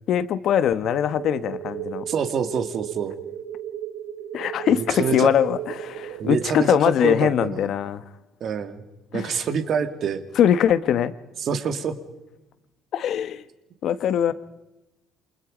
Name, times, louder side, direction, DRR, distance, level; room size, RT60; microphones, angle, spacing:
voice 1, 0.1-2.0 4.3-8.0 9.1-9.3 10.4-11.1 12.9-13.4 13.8-14.3, left 9 dB, 45° left, 13 dB, 1.2 m, -22 dB
sound 1, 0.8-7.3, right 10 dB, 60° right, 2.4 m, -35 dB
voice 2, 2.1-3.2 4.7-5.3 6.2-7.7 8.4-8.8 9.1-10.2 11.4-11.9, right 6 dB, 40° right, 9 dB, 2.2 m, -26 dB
28.5 x 26.5 x 5.1 m, 0.98 s
cardioid pair, 175°, 0 cm